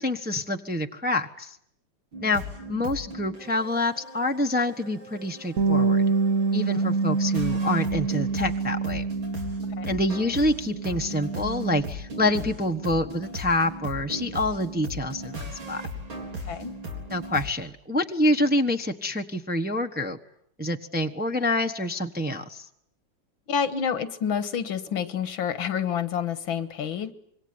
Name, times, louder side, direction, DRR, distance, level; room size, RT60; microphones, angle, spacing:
voice 1, 0.0-1.6 2.2-2.4 2.7-6.0 6.5-9.1 9.9-15.8 17.1-20.2 20.6-22.6, left 1 dB, 5° right, 5 dB, 0.8 m, -27 dB
sound 1, 2.1-17.5, equal, 90° right, 5.0 m, -38 dB
Bass guitar, 5.6-10.3 10.6-11.8, right 4 dB, 45° right, 1.7 m, -26 dB
voice 2, 16.5-16.8 23.5-27.1, left 7 dB, 85° left, 13 dB, 2.1 m, -28 dB
26.0 x 22.5 x 9.6 m, 0.70 s
omnidirectional pair, 2.1 m